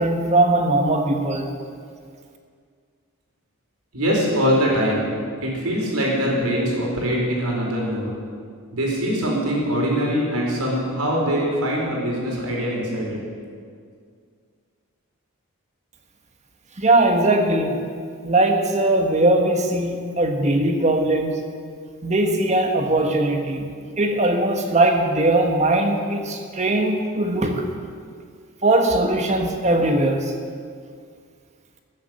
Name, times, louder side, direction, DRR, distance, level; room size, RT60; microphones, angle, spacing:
voice 1, 0.0-1.5 16.8-17.8 18.2-21.4 22.0-23.7 24.0-27.7 28.6-30.3, right 2 dB, 30° right, 4 dB, 1.5 m, -20 dB
voice 2, 3.9-5.1 5.4-8.1 8.7-13.2, equal, 90° right, -3 dB, 4.4 m, -23 dB
20.5 x 7.5 x 7.8 m, 2.1 s
head